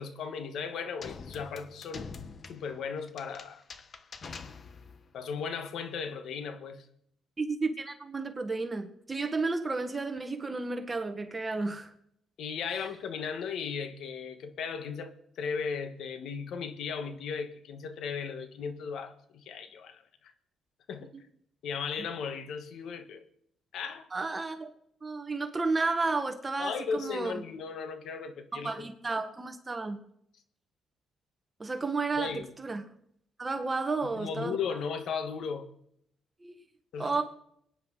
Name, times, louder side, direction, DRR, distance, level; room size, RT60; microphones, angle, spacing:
voice 1, 0.0-2.1 2.4-3.6 5.1-6.9 12.4-20.3 20.9-21.1 21.6-23.3 23.7-24.1 26.6-28.9 32.2-32.5 34.1-35.7 36.9-37.2, left 6 dB, 75° left, 1.6 m, -36 dB
sound 1, 1.0-5.1, left 5 dB, 45° left, 1.2 m, -45 dB
voice 2, 7.4-11.9 12.7-12.9 24.1-24.7 25.0-27.4 28.5-30.0 31.6-32.8 33.4-34.6 36.4-36.6 37.0-37.2, right 3 dB, 25° right, 1.6 m, -32 dB
23.0 x 10.0 x 4.1 m
cardioid pair, 90°, 0 cm